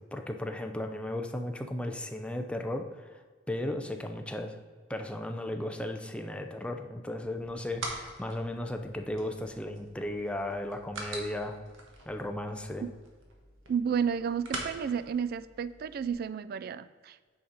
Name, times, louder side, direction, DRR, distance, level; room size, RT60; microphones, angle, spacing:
voice 1, 0.1-3.2 3.5-4.6 4.9-11.6 12.1-12.9, left 1 dB, 5° left, 5 dB, 0.5 m, -35 dB
sound 1, 7.2-16.1, right 2 dB, 90° right, 1.3 m, -45 dB
voice 2, 13.7-17.2, right 7 dB, 50° right, 15 dB, 0.3 m, -31 dB
8.5 x 5.0 x 4.0 m, 1.6 s
head